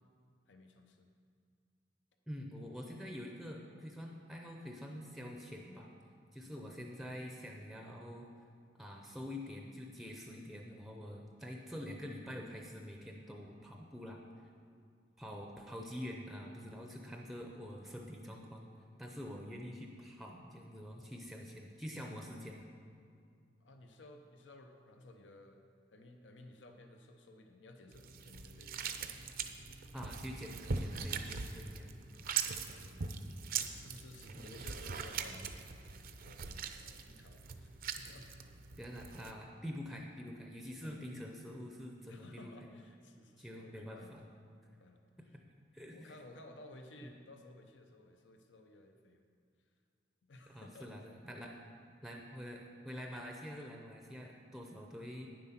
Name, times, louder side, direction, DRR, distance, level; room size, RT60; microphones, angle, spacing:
voice 1, 0.5-1.1 6.4-6.5 23.6-25.6 25.9-28.9 32.1-33.2 33.7-35.6 36.2-37.7 38.0-38.3 40.8-41.0 42.1-44.2 44.7-45.4 45.9-49.2 50.2-50.9, left 2 dB, 70° left, 5 dB, 0.8 m, -56 dB
voice 2, 2.3-5.9 6.3-8.3 8.8-14.5 15.2-18.7 19.0-22.7 29.9-32.0 34.3-34.5 38.8-42.5 43.4-44.2 45.7-46.1 47.0-47.1 50.5-51.6 52.0-55.3, equal, ahead, 1 dB, 0.6 m, -46 dB
sound 1, 27.9-39.3, right 5 dB, 50° right, 0.6 m, -41 dB
9.8 x 7.7 x 5.8 m, 2.3 s
head